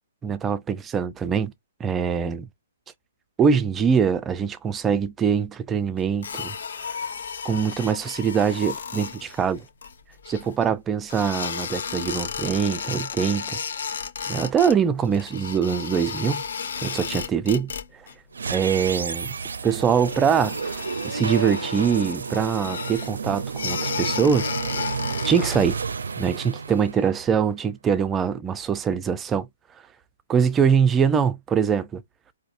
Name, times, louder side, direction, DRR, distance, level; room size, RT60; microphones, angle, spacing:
voice 1, 0.2-1.5 1.8-2.5 3.4-6.6 7.4-9.7 10.3-13.6 14.3-16.4 16.8-17.7 18.5-19.3 19.6-24.5 25.2-25.8 26.2-29.5 30.3-32.0, right 7 dB, 15° right, 0.4 m, -23 dB
sound 1, 6.2-10.7 11.1-14.8 15.0-18.1 18.4-18.9 19.2-19.3 19.8-25.8, left 6 dB, 70° left, 0.9 m, -33 dB
sound 2, 18.3-27.5, right 5 dB, 90° right, 0.4 m, -31 dB
4.0 x 2.7 x 2.5 m
hypercardioid pair, 155°, 0 cm